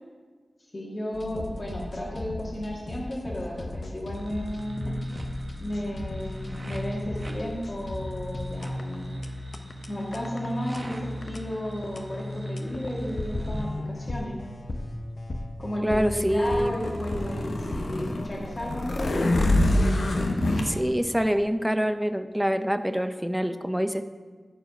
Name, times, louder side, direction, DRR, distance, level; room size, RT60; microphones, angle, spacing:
voice 1, 0.7-4.9 5.6-9.1 9.9-14.4 15.6-19.3, equal, 40° left, -4 dB, 1.7 m, -33 dB
sound 1, 1.1-20.8, left 1 dB, 55° left, 0.8 m, -37 dB
sound 2, 4.1-13.7, left 1 dB, 40° right, 1.2 m, -37 dB
voice 2, 15.8-16.8 20.6-24.1, equal, 5° right, 10 dB, 0.5 m, -26 dB
sound 3, 16.0-20.7, left 1 dB, 85° left, 1.0 m, -25 dB
14.0 x 4.8 x 5.1 m, 1.5 s
wide cardioid pair, 80°, 0 cm